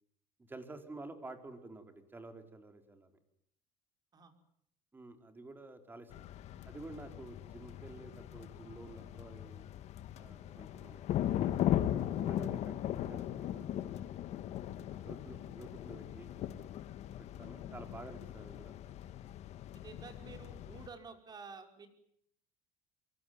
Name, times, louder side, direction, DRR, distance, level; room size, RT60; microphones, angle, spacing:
voice 1, 0.4-3.1 4.9-6.2 6.6-9.6 10.2-11.0 11.4-11.7 12.1-14.2 14.9-16.5 17.2-18.7, right 2 dB, 15° right, 6 dB, 4.6 m, -51 dB
sound 1, 6.1-20.9, left 12 dB, 55° left, 1.7 m, -38 dB
voice 2, 19.7-21.9, right 5 dB, 30° right, 5 dB, 5.7 m, -50 dB
25.5 x 23.5 x 9.5 m, 0.72 s
cardioid pair, 125°, 13 cm